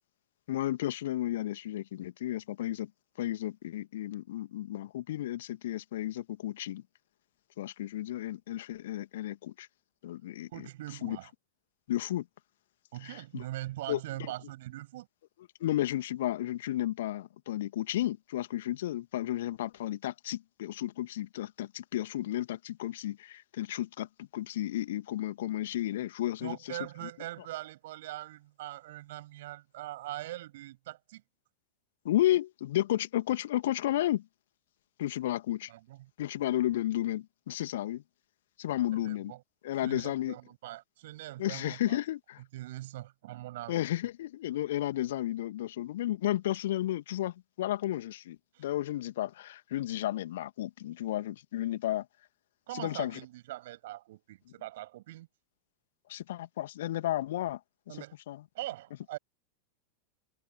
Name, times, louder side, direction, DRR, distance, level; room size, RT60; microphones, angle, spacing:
voice 1, 0.5-2.9 3.2-6.8 7.6-9.7 10.0-10.5 11.0-11.2 11.9-12.3 13.0-13.4 13.9-14.0 15.6-26.8 32.0-34.2 35.0-35.7 36.2-38.0 38.6-39.3 39.6-40.4 41.4-42.4 43.7-52.1 52.7-53.2 56.1-57.6 58.3-58.4, left 13 dB, 55° left, 2.5 m, -33 dB
voice 2, 10.5-11.3 12.9-15.1 26.4-31.2 35.7-36.1 38.9-39.4 39.7-42.0 42.5-43.8 48.5-48.6 52.7-55.3 57.9-58.2 58.5-59.2, right 16 dB, 55° right, 7.1 m, -42 dB
figure-of-eight pair, 90°, 0 cm